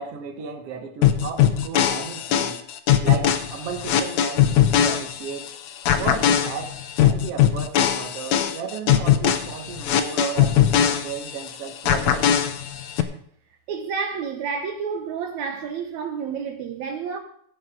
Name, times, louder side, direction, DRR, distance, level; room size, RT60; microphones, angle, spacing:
voice 1, 0.0-2.6 3.0-5.5 6.0-12.3, right 6 dB, 55° right, 2.3 m, -34 dB
sound 1, 1.0-5.5 5.9-11.5 11.9-13.0, left 10 dB, 75° left, 2.2 m, -20 dB
voice 2, 13.7-17.2, right 6 dB, 75° right, 2.3 m, -30 dB
15.5 x 10.5 x 3.8 m
omnidirectional pair, 3.4 m